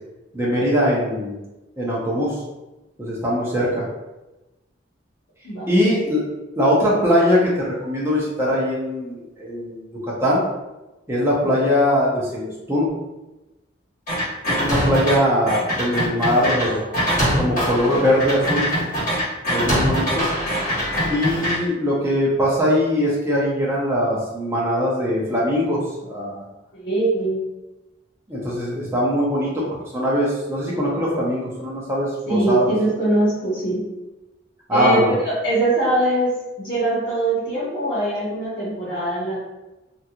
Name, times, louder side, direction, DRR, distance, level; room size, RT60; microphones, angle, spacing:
voice 1, 0.3-1.4 1.8-2.3 3.0-3.8 5.7-6.2 6.6-10.4 11.1-12.9 14.5-16.8 17.4-18.7 19.5-20.3 21.1-26.4 28.3-29.6 29.9-32.7 34.7-35.1, equal, 15° right, -6 dB, 0.7 m, -21 dB
sound 1, 14.1-15.1 15.5-21.6, equal, 40° left, 1.5 m, -22 dB
voice 2, 26.7-27.4 32.3-33.8 34.7-39.4, right 1 dB, 60° left, -10 dB, 1.3 m, -22 dB
3.1 x 2.8 x 2.4 m, 1.0 s
head